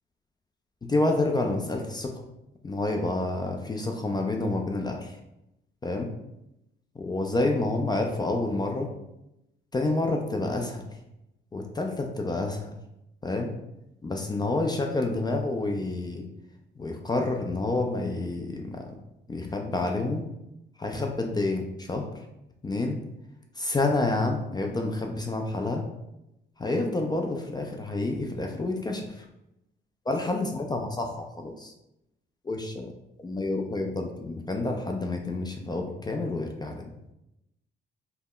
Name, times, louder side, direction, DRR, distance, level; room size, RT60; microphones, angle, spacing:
voice 1, 0.8-2.1 2.6-5.2 5.8-6.1 7.0-8.9 9.7-10.8 11.5-12.7 13.2-13.6 14.0-16.2 16.8-18.9 19.3-20.3 20.8-22.1 22.6-23.0 23.6-25.8 26.6-29.2 30.1-31.7 32.4-32.9 33.2-36.8, left 2 dB, 20° left, 2 dB, 0.3 m, -28 dB
2.1 x 2.1 x 3.6 m, 0.87 s
cardioid pair, 90°, 20 cm